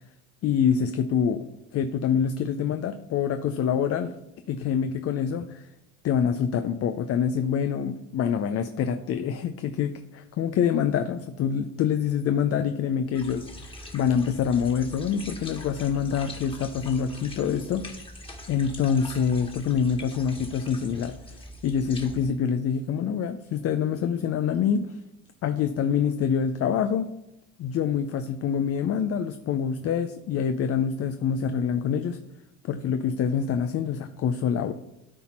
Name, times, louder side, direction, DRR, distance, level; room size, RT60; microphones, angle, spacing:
voice 1, 0.4-1.5 1.7-4.1 4.5-5.7 6.0-13.5 13.9-17.9 18.5-21.2 21.6-25.0 25.4-27.1 27.6-32.2 32.6-34.7, left 7 dB, 40° left, 9 dB, 0.6 m, -26 dB
sound 1, 13.1-22.3, left 1 dB, 15° left, 1.7 m, -43 dB
12.5 x 4.2 x 4.3 m, 0.91 s
supercardioid pair, 80°, 35 cm